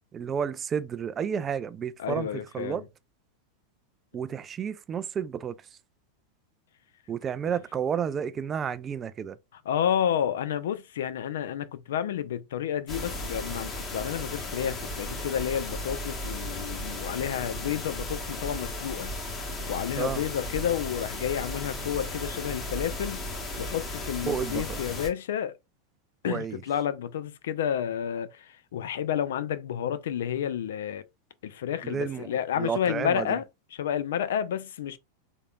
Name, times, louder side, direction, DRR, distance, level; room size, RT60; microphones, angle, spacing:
voice 1, 0.1-2.3 2.5-2.8 4.1-5.6 7.1-9.4 20.0-20.2 24.2-24.8 26.2-26.6 31.8-32.3 32.6-33.3, right 7 dB, 25° right, 0.3 m, -31 dB
voice 2, 2.0-2.9 9.7-19.1 19.7-23.2 23.6-25.6 26.2-31.0 31.4-33.4 33.7-35.0, left 9 dB, 60° left, 0.4 m, -30 dB
sound 1, 12.9-25.1, left 1 dB, 25° left, 1.2 m, -35 dB
3.7 x 3.4 x 2.3 m
figure-of-eight pair, 90°, 0 cm